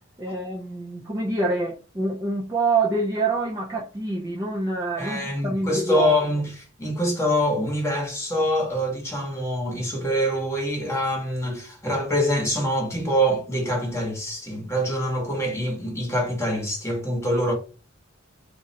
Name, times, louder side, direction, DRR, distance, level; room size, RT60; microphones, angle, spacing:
voice 1, 0.2-6.1, right 3 dB, 15° right, 0.4 m, -26 dB
voice 2, 5.0-17.5, equal, 15° left, 1.0 m, -25 dB
2.4 x 2.1 x 3.8 m
head